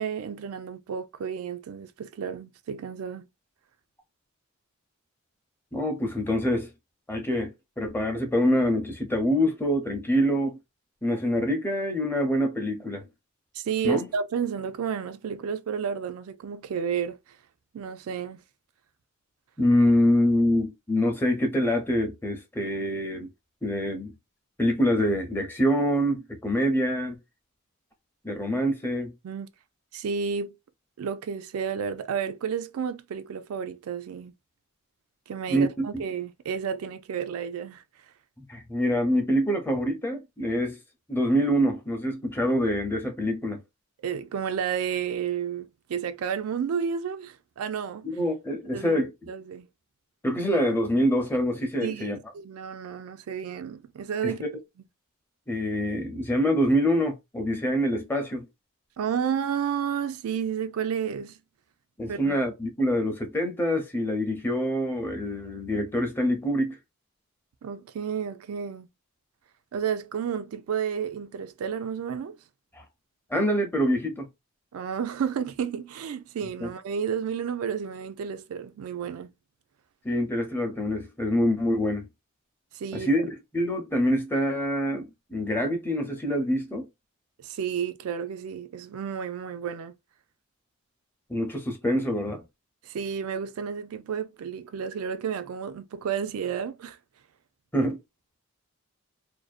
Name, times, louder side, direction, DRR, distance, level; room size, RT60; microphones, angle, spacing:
voice 1, 0.0-3.3 13.5-17.2 17.7-18.4 29.2-29.5 29.9-30.5 31.0-34.3 35.3-37.8 44.0-48.1 48.7-49.7 51.8-54.4 59.0-61.4 62.1-62.4 67.6-68.9 69.7-72.4 74.7-79.3 82.7-83.3 87.4-89.9 92.8-97.0, right 7 dB, 80° right, 0.3 m, -31 dB
voice 2, 5.7-6.7 7.1-10.6 11.0-13.0 13.8-14.1 19.6-23.3 23.6-24.1 24.6-27.2 28.2-29.1 35.5-35.9 38.4-40.8 41.1-43.6 48.0-49.1 50.2-52.2 54.2-54.5 55.5-58.4 62.0-66.8 72.7-72.8 73.3-74.3 76.6-76.7 80.0-82.1 82.9-86.8 91.3-92.4 97.7-98.0, equal, 10° left, 0.5 m, -25 dB
2.5 x 2.0 x 2.4 m
head